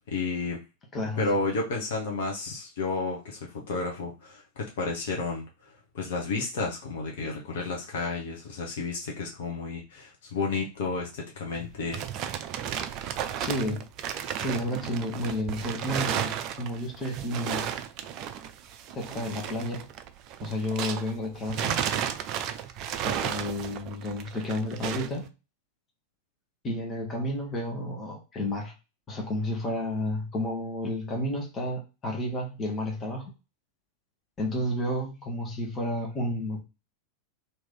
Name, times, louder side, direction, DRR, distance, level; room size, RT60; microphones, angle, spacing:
voice 1, 0.1-0.6 1.2-5.5 5.9-12.2, left 3 dB, 55° left, 0 dB, 0.9 m, -31 dB
voice 2, 0.9-1.3 13.4-13.9 14.4-17.7 19.0-19.9 20.4-21.9 23.0-25.3 26.6-28.7 29.1-33.3 34.4-36.6, left 1 dB, 25° left, 0 dB, 1.1 m, -31 dB
sound 1, 11.5-21.2 21.5-25.2, right 9 dB, 40° right, 0.4 m, -33 dB
3.1 x 2.7 x 3.8 m, 0.29 s
figure-of-eight pair, 90°, 0 cm